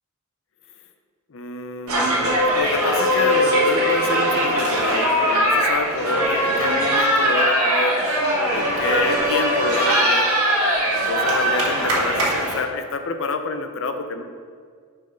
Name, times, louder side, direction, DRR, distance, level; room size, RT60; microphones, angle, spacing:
voice 1, 1.3-8.0 8.5-10.3 10.9-14.2, left 3 dB, 60° left, 7 dB, 0.6 m, -28 dB
sound 1, 1.9-12.6, equal, 80° right, 1.5 m, -20 dB
6.2 x 4.7 x 5.2 m, 2.1 s
head